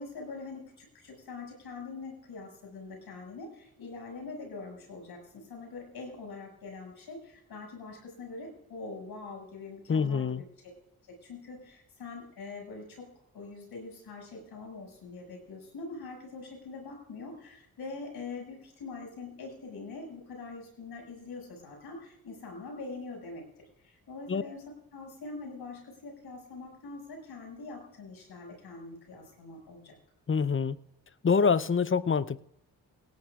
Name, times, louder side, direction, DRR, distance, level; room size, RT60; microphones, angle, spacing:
voice 1, 0.0-10.5 11.2-24.6 24.9-30.0, left 3 dB, 75° left, 6.8 m, -43 dB
voice 2, 9.9-10.4 24.3-24.4 30.3-30.8 31.2-32.4, left 5 dB, 30° left, 0.7 m, -25 dB
18.0 x 17.0 x 2.5 m
supercardioid pair, 40°, 38 cm